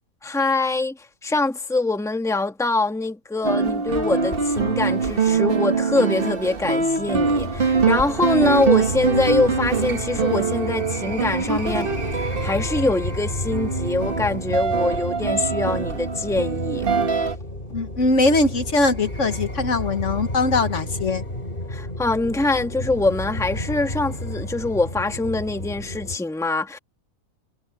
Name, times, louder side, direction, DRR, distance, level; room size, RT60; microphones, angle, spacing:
voice 1, 0.2-1.0 1.2-11.9 12.2-16.9 21.7-26.8, left 2 dB, ahead, 1.4 m, -24 dB
sound 1, 3.4-17.4, right 5 dB, 40° right, 1.4 m, -23 dB
sound 2, 7.1-26.2, left 1 dB, 35° left, 5.1 m, -32 dB
voice 2, 17.7-21.2, left 2 dB, 60° left, 1.7 m, -21 dB
omnidirectional pair, 1.5 m